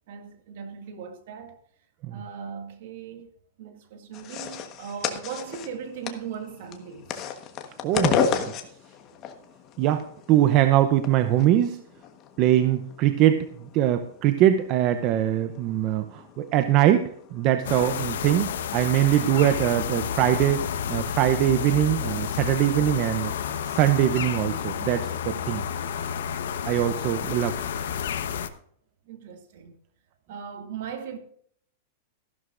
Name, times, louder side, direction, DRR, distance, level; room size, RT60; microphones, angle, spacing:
voice 1, 0.0-1.6 2.1-3.3 3.6-7.1 29.1-29.7 30.3-31.2, right 7 dB, 60° right, 2.0 m, -38 dB
sound 1, 4.1-23.1, left 7 dB, 30° left, 1.3 m, -35 dB
voice 2, 7.8-8.4 9.8-11.8 12.4-13.5 13.7-23.3 23.7-25.6 26.6-27.6, right 12 dB, 35° right, 0.6 m, -22 dB
sound 2, 17.6-28.5, left 8 dB, 80° left, 1.0 m, -30 dB
14.5 x 12.0 x 2.5 m
supercardioid pair, 160°, 0 cm